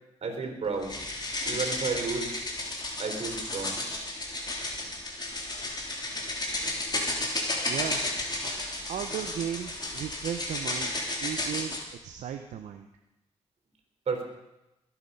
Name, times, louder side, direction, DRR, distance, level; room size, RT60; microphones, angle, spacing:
voice 1, 0.2-1.0 1.4-2.3 3.0-3.8 14.1-14.2, right 4 dB, 65° right, 5 dB, 3.7 m, -32 dB
sound 1, 0.8-11.8, left 2 dB, 35° left, 3.5 m, -33 dB
voice 2, 7.7-8.0 8.8-10.9 11.2-11.7 12.0-12.9, right 9 dB, 85° right, 6 dB, 0.8 m, -35 dB
21.5 x 8.9 x 5.4 m, 0.95 s
cardioid pair, 55°, 12 cm